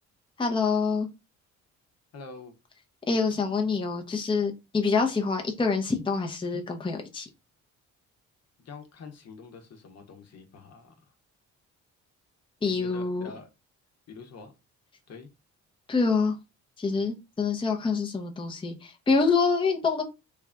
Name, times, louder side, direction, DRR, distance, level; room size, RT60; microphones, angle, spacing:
voice 1, 0.4-1.1 3.1-7.3 12.6-13.3 15.9-16.4 16.8-20.0, left 4 dB, 15° left, 0.7 m, -26 dB
voice 2, 2.1-2.5 8.6-10.9 12.7-13.5 14.1-14.5 15.1-15.3, left 4 dB, 60° left, 1.0 m, -46 dB
3.4 x 2.5 x 3.4 m
cardioid pair, 90°, 30 cm